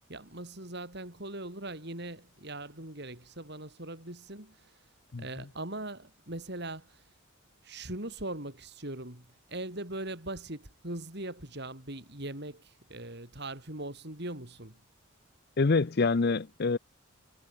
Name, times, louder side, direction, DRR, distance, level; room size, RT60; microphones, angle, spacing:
voice 1, 0.1-4.7 5.2-7.0 7.6-14.8, right 2 dB, 55° right, 5.1 m, -40 dB
voice 2, 5.1-5.4 15.6-16.8, left 4 dB, 50° left, 0.6 m, -26 dB
head